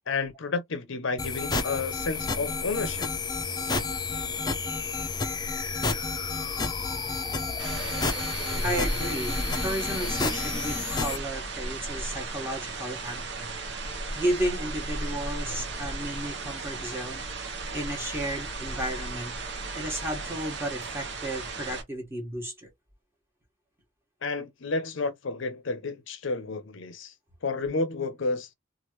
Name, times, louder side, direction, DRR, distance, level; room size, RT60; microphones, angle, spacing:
voice 1, 0.1-3.1 24.2-27.1 27.4-28.5, left 3 dB, 65° left, 0.6 m, -31 dB
sound 1, 1.2-11.2, left 4 dB, 20° left, 0.5 m, -30 dB
voice 2, 6.7-7.2 8.6-13.6 14.1-19.4 19.7-22.7, right 1 dB, 10° right, 1.3 m, -33 dB
sound 2, 7.6-21.8, right 3 dB, 55° right, 0.8 m, -35 dB
3.1 x 2.4 x 3.0 m
head